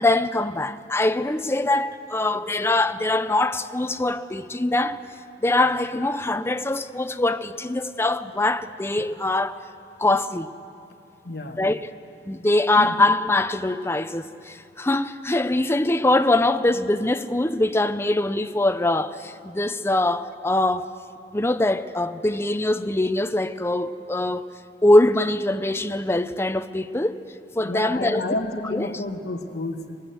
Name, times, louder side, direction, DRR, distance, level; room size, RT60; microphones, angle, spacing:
voice 1, 0.0-5.0 5.4-9.6 10.0-10.5 11.6-11.9 12.3-20.9 21.3-24.5 24.8-27.2 27.5-28.3 28.7-29.0, left 2 dB, 15° left, 0.6 m, -23 dB
voice 2, 11.2-11.6 12.7-13.0 27.6-30.0, left 2 dB, 65° left, 1.2 m, -30 dB
24.0 x 20.5 x 7.9 m
head